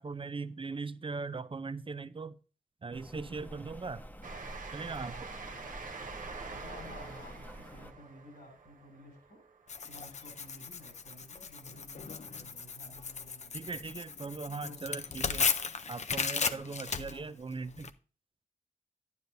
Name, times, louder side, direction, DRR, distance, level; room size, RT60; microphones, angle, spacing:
voice 1, 0.0-2.4 2.8-4.0 4.7-5.3 13.5-15.5 15.9-17.9, right 4 dB, 35° right, 0.5 m, -39 dB
Rain, 2.9-7.9, equal, 10° left, 1.0 m, -48 dB
Train, 4.2-10.4, right 4 dB, 65° right, 0.9 m, -46 dB
voice 2, 6.4-9.4 9.9-14.0 14.6-15.0 16.9-17.3, left 1 dB, 90° left, 5.5 m, -53 dB
Tearing, 9.7-17.9, left 5 dB, 50° left, 0.5 m, -36 dB
10.0 x 9.6 x 2.6 m
cardioid pair, 40°, 15 cm